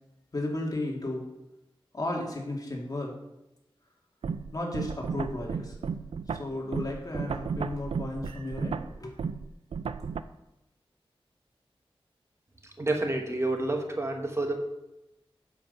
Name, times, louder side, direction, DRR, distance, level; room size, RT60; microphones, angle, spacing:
voice 1, 0.3-1.2 1.9-3.1 4.5-5.7 6.4-9.1, left 1 dB, 40° left, -1 dB, 2.3 m, -34 dB
sound 1, 4.2-10.2, right 6 dB, 85° right, 0.4 m, -34 dB
voice 2, 12.8-14.6, right 2 dB, 30° right, 3 dB, 1.2 m, -29 dB
8.1 x 7.0 x 5.5 m, 0.91 s
wide cardioid pair, 75°, 10 cm